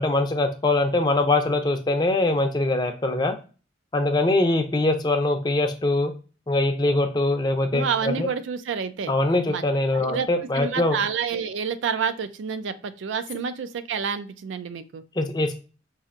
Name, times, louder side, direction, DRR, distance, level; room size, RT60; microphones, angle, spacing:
voice 1, 0.0-3.3 3.9-6.1 6.5-8.3 9.1-11.0 15.2-15.5, left 2 dB, 20° left, 5 dB, 0.5 m, -22 dB
voice 2, 7.7-9.1 9.5-9.6 10.1-10.3 10.6-15.0, right 6 dB, 80° right, 12 dB, 0.4 m, -28 dB
4.1 x 2.5 x 2.4 m, 0.35 s
head